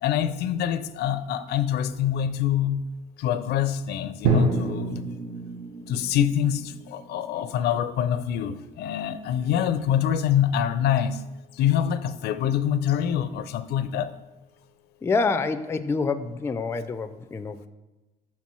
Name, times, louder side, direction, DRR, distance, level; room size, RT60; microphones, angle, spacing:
voice 1, 0.0-2.8 3.2-5.0 5.9-11.2 11.6-14.1, left 9 dB, 75° left, 13 dB, 0.5 m, -25 dB
Drum, 4.2-8.2, right 3 dB, 80° right, 1.0 m, -28 dB
voice 2, 15.0-17.7, left 4 dB, 15° left, 11 dB, 0.3 m, -27 dB
5.8 x 4.3 x 6.0 m, 1.1 s
cardioid pair, 110°, 17 cm